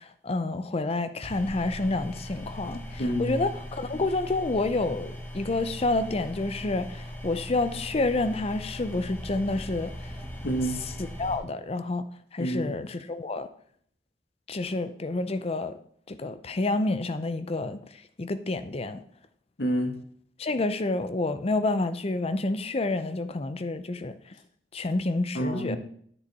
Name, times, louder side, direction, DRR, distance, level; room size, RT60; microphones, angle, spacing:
voice 1, 0.0-10.1 11.2-12.0 12.3-13.5 14.5-15.8 16.1-19.0 20.4-24.1 24.7-25.8, left 2 dB, 35° left, 0.6 m, -29 dB
sound 1, 1.2-11.3, equal, 15° left, 1.5 m, -39 dB
voice 2, 3.0-3.4 10.4-10.8 12.4-12.7 19.6-19.9 25.3-25.8, equal, 70° left, 1.3 m, -28 dB
10.0 x 6.8 x 4.2 m
head